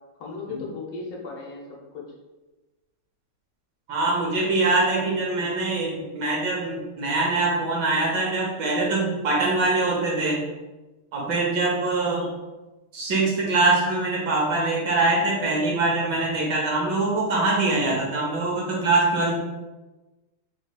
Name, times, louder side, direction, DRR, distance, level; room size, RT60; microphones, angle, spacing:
voice 1, 0.2-2.1, left 4 dB, 65° left, -3 dB, 1.3 m, -36 dB
voice 2, 3.9-10.4 11.1-12.3 12.9-19.4, right 2 dB, 65° right, -3 dB, 1.3 m, -23 dB
5.3 x 3.1 x 2.3 m, 1.1 s
omnidirectional pair, 2.3 m